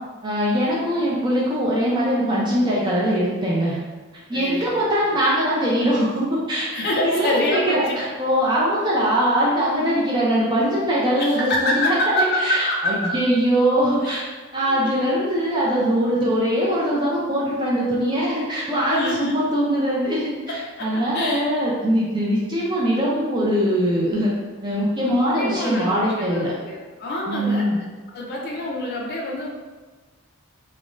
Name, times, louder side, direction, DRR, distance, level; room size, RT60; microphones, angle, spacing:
voice 1, 0.2-3.8 4.3-14.2 14.5-20.3 20.8-24.3 24.6-26.5 27.3-27.8, equal, 20° right, -6 dB, 0.4 m, -22 dB
voice 2, 4.3-4.8 6.7-8.0 11.1-13.1 14.0-14.2 14.6-15.0 18.9-19.3 20.5-21.5 25.0-27.7 28.1-29.5, left 1 dB, 45° left, -2 dB, 0.4 m, -26 dB
2.5 x 2.2 x 3.0 m, 1.3 s
head